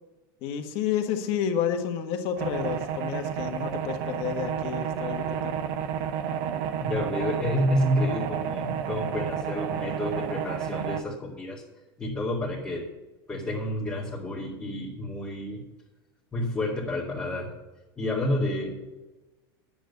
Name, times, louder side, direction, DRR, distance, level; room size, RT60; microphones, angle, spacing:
voice 1, 0.4-5.6, left 8 dB, 50° left, 5 dB, 1.7 m, -30 dB
sound 1, 2.4-11.0, right 8 dB, 60° right, 0.9 m, -31 dB
voice 2, 6.8-11.6 12.0-12.9 13.3-15.6 16.3-17.5 18.0-18.9, left 1 dB, 10° left, -7 dB, 2.1 m, -29 dB
10.5 x 8.9 x 5.4 m, 1.2 s
supercardioid pair, 140°, 12 cm